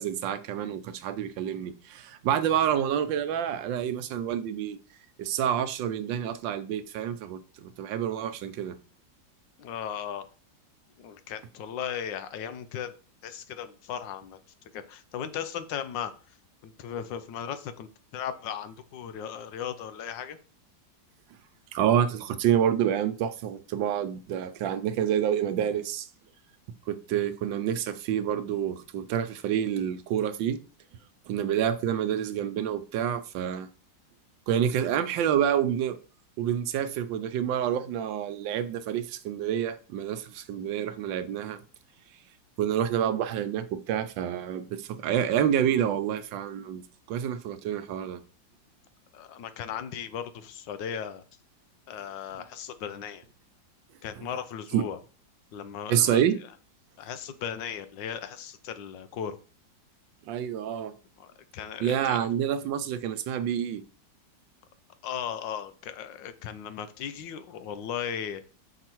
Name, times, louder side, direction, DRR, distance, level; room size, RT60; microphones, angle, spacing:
voice 1, 0.0-4.8 5.2-8.7 21.7-26.1 26.9-30.6 31.3-33.7 34.5-36.0 36.4-41.6 42.6-46.8 47.1-48.2 54.7-54.9 55.9-56.3 60.3-60.9 61.8-63.8, right 9 dB, 85° right, 1.4 m, -28 dB
voice 2, 9.6-10.3 11.0-12.9 13.2-14.4 14.7-16.1 16.6-20.4 27.1-27.2 49.1-51.2 51.9-53.2 54.0-55.0 55.5-56.2 57.0-59.4 61.2-62.3 65.0-68.4, left 8 dB, 80° left, 1.4 m, -36 dB
6.1 x 4.8 x 4.5 m
omnidirectional pair, 2.0 m